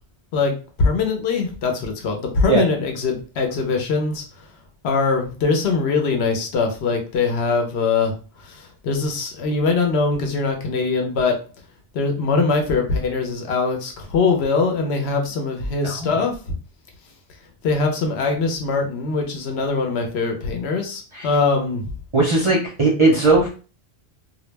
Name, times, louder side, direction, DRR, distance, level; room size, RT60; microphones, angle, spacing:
voice 1, 0.3-4.2 4.8-8.1 8.4-11.4 11.9-16.4 17.6-21.9, left 4 dB, 70° left, 3 dB, 0.8 m, -22 dB
voice 2, 15.8-16.1 21.1-21.3 22.1-23.5, right 3 dB, 35° right, -3 dB, 0.5 m, -18 dB
2.2 x 2.0 x 3.1 m, 0.36 s
omnidirectional pair, 1.2 m